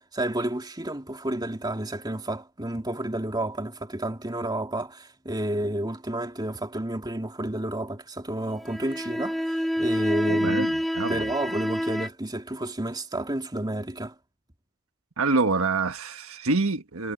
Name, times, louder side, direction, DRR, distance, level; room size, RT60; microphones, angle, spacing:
voice 1, 0.0-10.7 11.1-14.1, right 1 dB, 20° right, 2.9 m, -31 dB
sound 1, 8.6-12.1, equal, ahead, 0.4 m, -27 dB
voice 2, 10.3-11.3 15.2-17.1, right 3 dB, 75° right, 1.4 m, -26 dB
head